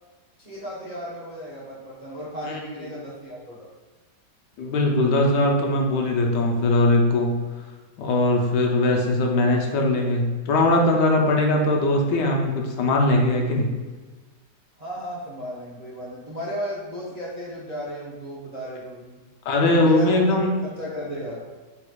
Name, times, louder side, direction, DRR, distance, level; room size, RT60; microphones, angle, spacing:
voice 1, 0.4-3.7 14.8-19.2 19.8-20.3 20.6-21.4, equal, 70° right, -7 dB, 0.3 m, -34 dB
voice 2, 4.6-7.4 8.0-13.7 19.4-20.5, left 2 dB, 80° left, 1 dB, 1.3 m, -20 dB
4.0 x 2.4 x 4.5 m, 1.3 s
omnidirectional pair, 1.9 m